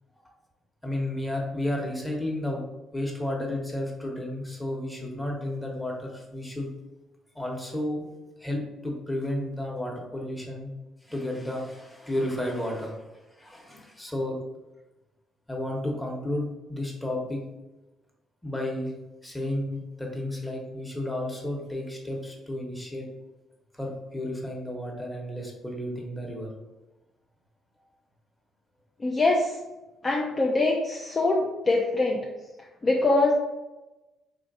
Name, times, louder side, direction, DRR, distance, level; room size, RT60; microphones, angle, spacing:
voice 1, 0.8-2.6 2.9-6.7 7.3-8.0 8.4-10.7 11.1-13.0 13.4-14.4 15.5-17.4 18.4-19.0 19.2-23.1 23.7-26.5, left 1 dB, 10° left, -1 dB, 1.1 m, -32 dB
voice 2, 29.0-29.6 30.0-32.2 32.8-33.3, left 2 dB, 35° left, -1 dB, 0.5 m, -23 dB
3.9 x 2.5 x 2.6 m, 1.0 s
hypercardioid pair, 55°, 0 cm